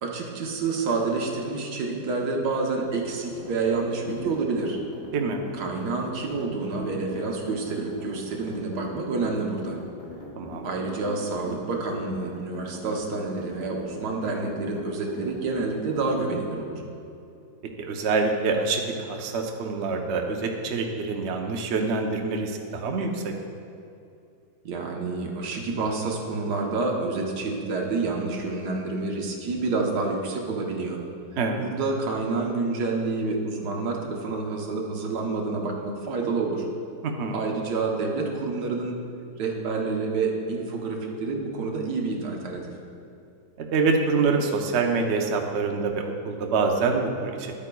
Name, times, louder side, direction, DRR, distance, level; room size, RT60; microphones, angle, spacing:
voice 1, 0.0-4.8 5.5-9.8 10.6-16.8 24.6-31.0 31.6-36.7 37.3-39.0 39.4-42.7, right 3 dB, 90° right, 0 dB, 1.6 m, -28 dB
sound 1, 2.8-16.2, left 2 dB, 45° left, 1.3 m, -41 dB
voice 2, 5.1-5.4 10.4-10.7 17.8-23.3 31.4-31.6 37.0-37.4 43.6-47.5, right 4 dB, 55° right, 3 dB, 0.8 m, -26 dB
11.0 x 8.5 x 2.3 m, 2.5 s
omnidirectional pair, 1.7 m